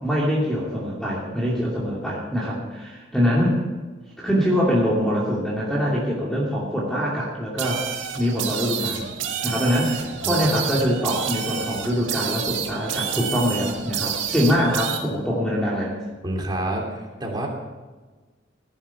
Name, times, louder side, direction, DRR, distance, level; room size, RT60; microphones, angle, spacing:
voice 1, 0.0-3.6 4.2-7.8 8.1-9.1 9.4-16.0, equal, 5° left, -5 dB, 2.6 m, -23 dB
sound 1, 7.6-15.0, right 8 dB, 85° right, 1.9 m, -29 dB
voice 2, 16.2-17.5, right 1 dB, 25° right, -1 dB, 3.0 m, -28 dB
17.0 x 11.0 x 5.9 m, 1.3 s
head